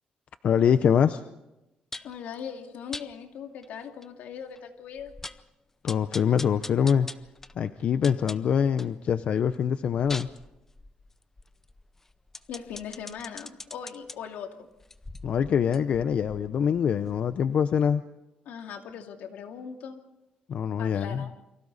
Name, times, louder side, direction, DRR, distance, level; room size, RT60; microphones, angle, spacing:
voice 1, 0.4-1.2 5.8-7.1 7.6-10.3 15.2-18.0 20.5-21.3, left 8 dB, 50° left, 11 dB, 0.7 m, -24 dB
sound 1, 1.9-2.2 2.9-3.1 3.6-3.7 4.0-4.1 4.6-4.7 5.0-5.5 5.9-9.0 9.4-14.2 14.8-17.5 17.8-17.9, left 2 dB, 15° left, 0.7 m, -43 dB
voice 2, 2.0-5.1 12.5-14.7 18.5-20.0 20.8-21.3, left 7 dB, 80° left, 4 dB, 2.5 m, -39 dB
29.0 x 24.5 x 4.1 m, 0.95 s
cardioid pair, 145°, 3 cm